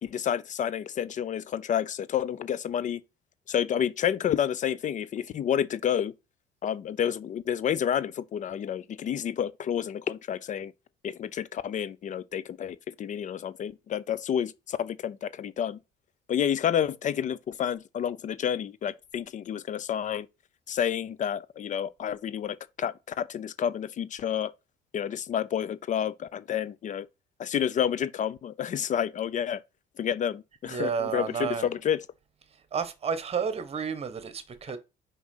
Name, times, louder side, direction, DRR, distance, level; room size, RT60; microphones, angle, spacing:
voice 1, 0.0-3.0 3.5-6.1 6.6-10.7 11.0-15.8 16.3-20.3 20.7-24.5 24.9-27.1 27.4-29.6 30.0-32.0, left 9 dB, 45° left, 0.6 m, -29 dB
voice 2, 30.6-31.7 32.7-34.8, right 6 dB, 35° right, 1.4 m, -31 dB
6.1 x 5.3 x 5.5 m
cardioid pair, 110°, 17 cm